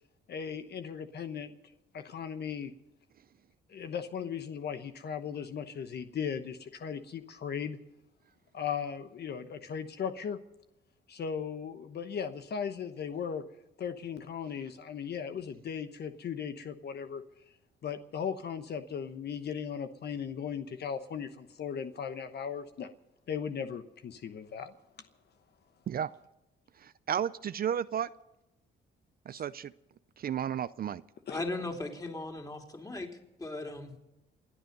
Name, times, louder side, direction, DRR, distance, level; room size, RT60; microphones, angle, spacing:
voice 1, 0.3-1.5 1.9-2.7 3.7-7.8 8.5-10.4 11.1-13.4 13.8-17.2 17.8-22.9 23.3-24.7 29.3-29.4 31.3-31.4, left 7 dB, 55° left, 9 dB, 1.1 m, -37 dB
voice 2, 26.8-28.1 29.3-29.7 30.2-31.0, right 9 dB, 50° right, 15 dB, 0.5 m, -33 dB
voice 3, 31.3-33.1 33.4-33.9, left 2 dB, 20° left, 2 dB, 3.4 m, -37 dB
28.0 x 9.4 x 5.4 m, 0.92 s
cardioid pair, 90°, 20 cm